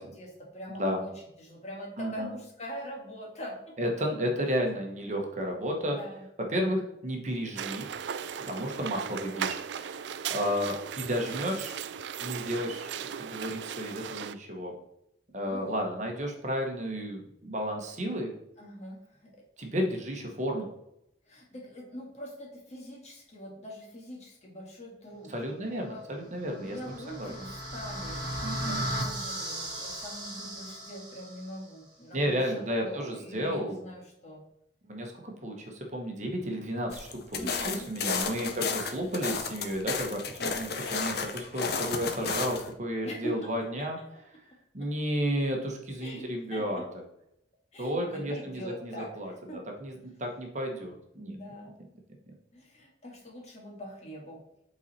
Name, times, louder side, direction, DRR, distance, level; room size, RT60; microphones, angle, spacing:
voice 1, 0.0-3.7 5.9-6.2 15.5-15.8 18.6-19.4 21.3-26.1 26.4-34.4 37.4-37.9 38.3-38.7 43.0-43.5 43.8-43.9 44.8-44.9 46.0-46.8 47.7-49.6 51.2-51.7 52.5-54.4, equal, 40° left, -2 dB, 1.8 m, -43 dB
voice 2, 0.7-1.0 2.0-2.3 3.8-6.0 6.5-7.9 8.4-11.7 12.2-14.7 15.3-18.3 19.6-20.7 25.3-27.3 28.4-28.8 32.1-33.8 34.9-44.0 44.7-46.8 47.8-49.3 49.8-51.4, equal, 40° right, 2 dB, 1.1 m, -32 dB
sound 1, 7.6-14.3, right 8 dB, 75° right, 0.4 m, -37 dB
sound 2, 26.4-31.5, right 1 dB, 25° right, 2.0 m, -36 dB
sound 3, 36.9-42.7, left 5 dB, 60° left, 0.7 m, -32 dB
8.1 x 4.2 x 4.3 m, 0.79 s
head